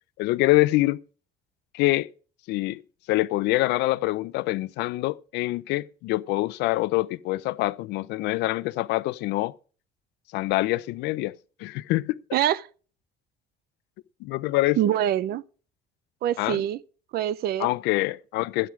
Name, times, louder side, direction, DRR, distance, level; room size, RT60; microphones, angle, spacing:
voice 1, 0.2-1.0 1.7-2.1 2.5-2.8 3.1-9.5 10.3-12.2 14.2-14.9 16.4-16.6 17.6-18.7, left 19 dB, 90° left, 0.6 m, -25 dB
voice 2, 12.3-12.7 14.8-15.4 16.2-16.8 17.1-17.7, right 11 dB, 65° right, 0.6 m, -24 dB
13.0 x 9.0 x 5.0 m
cardioid pair, 110°, 17 cm